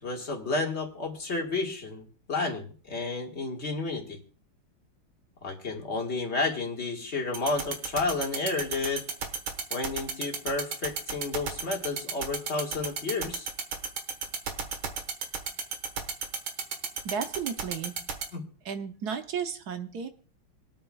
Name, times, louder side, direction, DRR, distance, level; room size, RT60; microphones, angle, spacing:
voice 1, 0.0-4.2 5.4-9.0 9.7-13.5 18.3-18.4, left 3 dB, 35° left, 1 dB, 1.9 m, -31 dB
sound 1, 7.3-18.2, right 6 dB, 80° right, 2.3 m, -31 dB
voice 2, 17.0-17.9 18.6-20.1, right 7 dB, 60° right, 8 dB, 1.1 m, -33 dB
26.0 x 8.8 x 2.3 m, 0.40 s
omnidirectional pair, 2.3 m